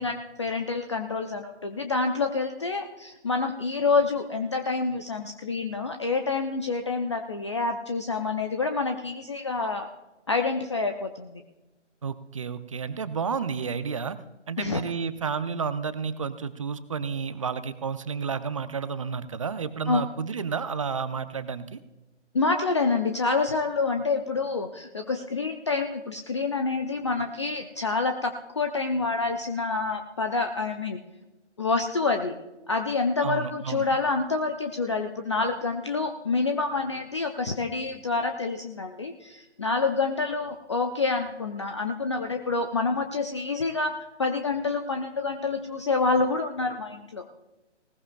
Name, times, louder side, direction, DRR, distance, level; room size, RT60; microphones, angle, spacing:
voice 1, 0.0-9.9 10.3-11.4 14.6-14.8 19.9-20.0 22.3-31.0 31.6-32.4 32.7-43.9 44.2-47.3, left 3 dB, 25° left, 6 dB, 0.6 m, -27 dB
voice 2, 12.0-14.2 14.5-21.8 33.2-33.9, right 6 dB, 30° right, 13 dB, 0.6 m, -31 dB
20.0 x 19.0 x 2.3 m, 1.0 s
figure-of-eight pair, 145°, 36 cm